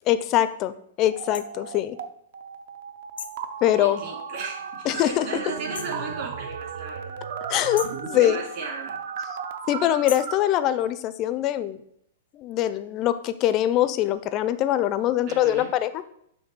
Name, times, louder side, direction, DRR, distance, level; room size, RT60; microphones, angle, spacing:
voice 1, 0.1-2.0 3.6-4.0 4.8-5.3 7.5-8.4 9.7-11.8 12.3-16.0, left 12 dB, 30° left, 12 dB, 0.4 m, -23 dB
sound 1, 1.1-2.1 2.3-10.3, right 7 dB, 60° right, 0.5 m, -35 dB
sound 2, 1.3-1.5 3.2-3.5 5.7-6.0 7.7-8.1 10.1-10.4, left 7 dB, 90° left, 0.5 m, -37 dB
voice 2, 3.8-7.2 8.2-8.9 15.3-15.7, right 4 dB, 45° right, -2 dB, 2.5 m, -36 dB
6.5 x 2.7 x 5.5 m, 0.70 s
hypercardioid pair, 150°, 0 cm